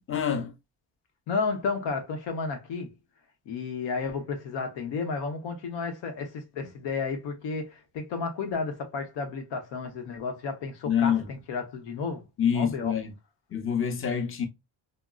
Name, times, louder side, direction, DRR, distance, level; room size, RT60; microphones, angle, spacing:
voice 1, 0.1-0.5 10.9-11.3 12.4-13.1 13.5-14.5, left 8 dB, 30° left, 0.7 m, -26 dB
voice 2, 1.3-2.9 3.5-12.2 12.5-12.9, left 4 dB, 90° left, 0.9 m, -32 dB
3.6 x 2.0 x 2.2 m
cardioid pair, 90°, 43 cm